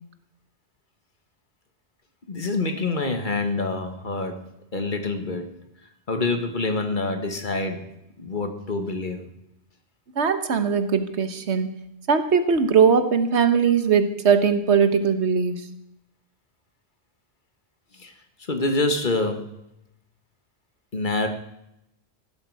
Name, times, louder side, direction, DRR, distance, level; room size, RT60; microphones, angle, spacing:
voice 1, 2.3-4.4 4.7-5.6 6.1-7.9 8.2-9.3 18.0-18.1 18.5-19.5 20.9-21.3, left 2 dB, 45° left, 6 dB, 1.7 m, -26 dB
voice 2, 10.2-11.7 12.1-15.6, right 6 dB, 90° right, 10 dB, 1.4 m, -20 dB
15.5 x 12.0 x 4.8 m, 0.81 s
omnidirectional pair, 1.1 m